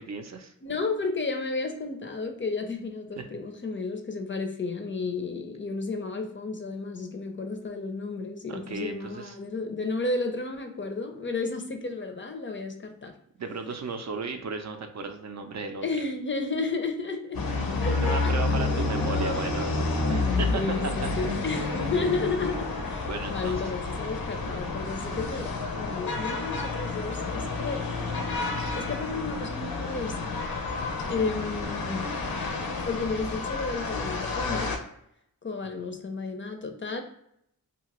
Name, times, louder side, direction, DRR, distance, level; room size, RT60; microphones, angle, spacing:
voice 1, 0.0-0.5 3.2-3.3 8.5-9.4 13.4-15.9 17.9-19.7 20.1-20.9 21.3-21.4 23.0-23.7 35.8-36.0, right 4 dB, 50° right, 6 dB, 0.4 m, -35 dB
voice 2, 0.6-13.1 15.8-17.4 17.8-18.3 19.0-19.4 20.5-27.8 28.7-30.3 31.1-32.0 32.8-34.8 35.4-37.0, left 3 dB, 35° left, 5 dB, 0.5 m, -32 dB
sound 1, 17.3-34.8, left 3 dB, 80° left, 0.7 m, -30 dB
2.8 x 2.4 x 2.9 m, 0.74 s
cardioid pair, 65°, 36 cm